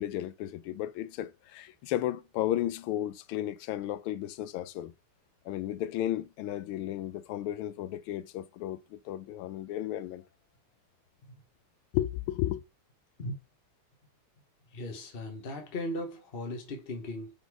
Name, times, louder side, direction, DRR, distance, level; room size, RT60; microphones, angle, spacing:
voice 1, 0.0-4.9 5.4-10.2 11.9-12.6, left 13 dB, 90° left, 1.4 m, -34 dB
voice 2, 14.7-17.3, left 1 dB, 45° left, 0.8 m, -37 dB
5.2 x 4.0 x 4.6 m
omnidirectional pair, 2.3 m